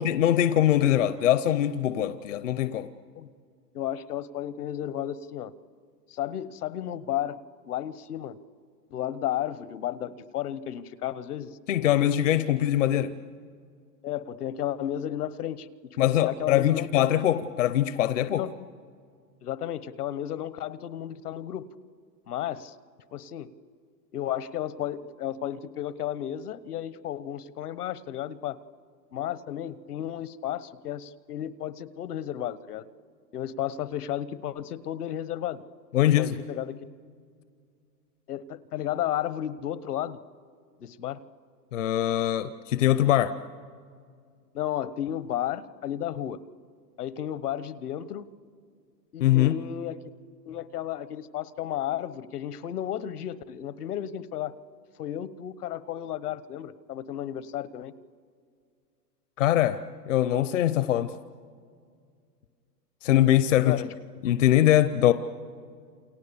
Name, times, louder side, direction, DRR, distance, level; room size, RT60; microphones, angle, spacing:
voice 1, 0.0-2.9 11.7-13.1 16.0-18.4 35.9-36.4 41.7-43.3 49.2-49.6 59.4-59.8 60.1-61.1 63.0-63.8 64.2-65.1, left 12 dB, 50° left, 11 dB, 0.8 m, -22 dB
voice 2, 3.7-5.5 6.1-7.4 7.7-8.4 8.9-11.5 14.0-15.7 16.0-16.9 18.4-18.5 19.4-21.7 22.3-22.7 23.1-23.5 24.1-28.6 29.1-32.9 33.3-35.6 36.2-36.8 38.3-40.2 40.8-41.2 44.5-46.4 47.0-48.3 49.1-50.0 50.5-54.5 55.0-57.9 63.6-63.9, left 11 dB, 65° left, 15 dB, 1.2 m, -33 dB
29.5 x 28.5 x 7.0 m, 2.2 s
hypercardioid pair, 175°, 49 cm